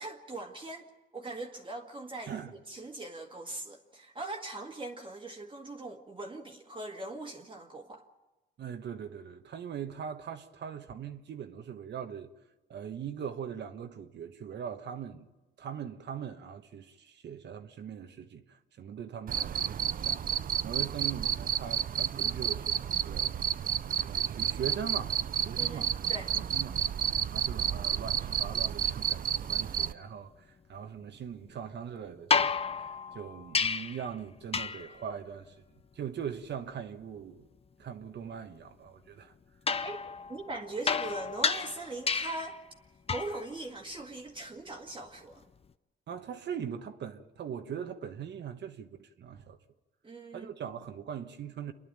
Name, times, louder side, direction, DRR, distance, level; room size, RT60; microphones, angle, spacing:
voice 1, 0.0-2.4 2.7-8.0 25.6-26.3 39.8-40.0 40.3-42.6 43.1-45.4 50.0-50.5, right 2 dB, 25° right, 1.9 m, -41 dB
voice 2, 8.6-12.3 12.7-15.3 15.6-20.3 20.6-23.3 23.9-25.2 25.4-25.9 26.3-26.8 27.3-35.6 35.9-37.5 37.8-39.3 46.1-49.6 50.3-51.7, right 8 dB, 60° right, 1.3 m, -41 dB
Cricket, 19.3-29.9, right 9 dB, 45° right, 0.6 m, -31 dB
sound 1, 32.3-34.1 34.5-35.0 39.7-42.6 43.1-43.4 45.4-45.5, left 5 dB, 30° left, 0.7 m, -31 dB
28.0 x 11.0 x 9.1 m
cardioid pair, 90°, 20 cm